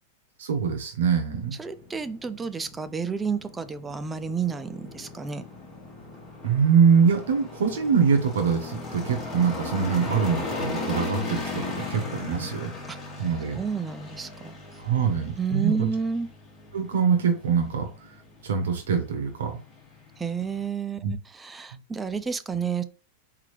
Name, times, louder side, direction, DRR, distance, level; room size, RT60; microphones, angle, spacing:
voice 1, 0.4-1.6 6.4-12.7 13.2-13.6 14.8-15.9 16.7-18.2 18.4-19.6 21.0-21.1 21.7-21.8, right 6 dB, 90° right, 4 dB, 1.1 m, -24 dB
sound 1, 1.3-20.7, left 3 dB, 15° left, 2.2 m, -38 dB
voice 2, 1.6-5.4 12.9-13.0 13.6-14.6 15.4-16.3 20.2-22.8, right 5 dB, 10° right, 12 dB, 0.4 m, -30 dB
4.3 x 3.8 x 3.2 m, 0.37 s
supercardioid pair, 150°, 0 cm